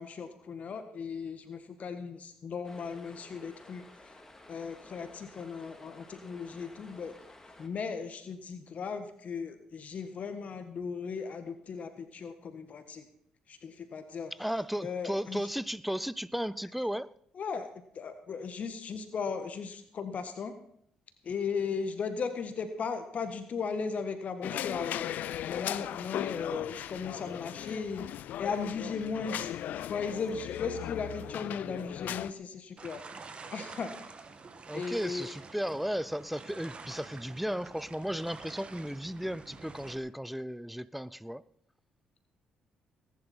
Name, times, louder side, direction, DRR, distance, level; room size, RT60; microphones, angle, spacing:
voice 1, 0.0-4.2 4.5-7.1 7.6-13.1 13.5-14.3 14.8-15.4 17.3-17.7 17.9-20.5 21.2-25.1 25.4-28.0 28.4-29.5 29.9-33.0 33.5-33.9 34.7-35.3, left 5 dB, 55° left, 1.5 m, -37 dB
sound 1, 2.6-7.7, left 2 dB, 15° left, 2.9 m, -54 dB
voice 2, 14.4-17.1 34.7-41.4, equal, 5° right, 0.6 m, -35 dB
sound 2, 24.4-32.3, left 11 dB, 70° left, 0.5 m, -37 dB
sound 3, 32.8-40.0, right 4 dB, 40° right, 1.9 m, -48 dB
19.0 x 10.5 x 4.4 m
supercardioid pair, 60°, 3 cm